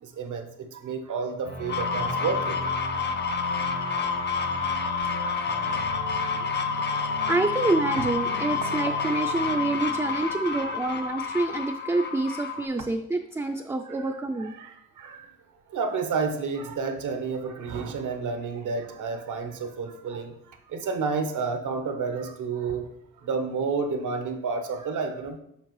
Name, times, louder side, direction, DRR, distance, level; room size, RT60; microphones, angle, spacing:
voice 1, 0.0-2.6 10.3-10.8 13.9-15.3 15.7-20.3 20.7-22.9 23.2-25.4, right 4 dB, 80° right, 6 dB, 1.0 m, -30 dB
sound 1, 1.4-10.8, right 1 dB, 90° left, 2.6 m, -37 dB
sound 2, 1.7-12.7, left 5 dB, 35° left, 0.7 m, -29 dB
voice 2, 6.4-14.5, right 2 dB, 10° right, 4 dB, 0.3 m, -27 dB
7.2 x 5.2 x 3.1 m, 0.77 s
cardioid pair, 105°, 30 cm